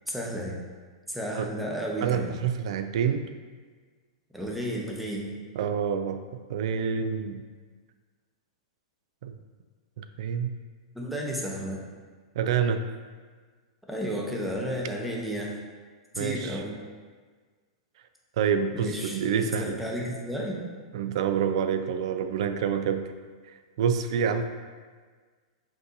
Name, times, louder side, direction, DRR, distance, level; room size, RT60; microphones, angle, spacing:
voice 1, 0.1-0.6 1.1-2.3 4.3-5.3 10.9-11.8 13.9-15.6 16.1-16.8 18.7-20.6, equal, ahead, -2 dB, 0.7 m, -32 dB
voice 2, 2.0-3.2 5.6-7.4 9.2-9.3 10.0-10.6 12.3-12.8 16.1-16.6 18.4-19.8 20.9-23.1 23.8-24.4, right 7 dB, 65° right, 8 dB, 0.3 m, -27 dB
5.8 x 2.7 x 2.7 m, 1.5 s
hypercardioid pair, 120°, 3 cm